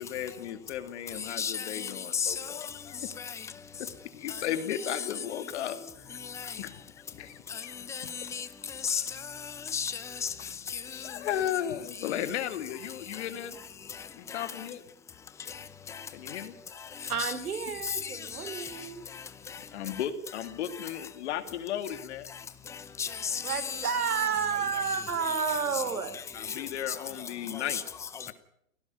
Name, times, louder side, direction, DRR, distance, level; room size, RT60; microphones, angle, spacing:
voice 1, 0.0-3.1 4.1-6.7 7.1-8.1 8.8-8.9 10.9-13.6 14.1-14.8 16.1-16.5 19.7-22.3 26.3-27.8, left 10 dB, 50° left, 2.4 m, -35 dB
voice 2, 1.2-2.8 3.2-3.5 4.3-4.4 4.7-5.1 6.2-6.6 7.5-11.1 12.0-12.2 13.1-13.3 13.9-14.7 15.5-16.4 16.8-17.3 17.8-18.9 19.1-19.6 19.9-20.0 22.3-22.4 22.7-24.3 24.7-25.8 26.1-28.3, left 7 dB, 5° left, 0.7 m, -36 dB
voice 3, 17.1-19.0 23.4-26.2, right 6 dB, 90° right, 3.3 m, -31 dB
17.5 x 16.0 x 9.4 m
hypercardioid pair, 150°, 43 cm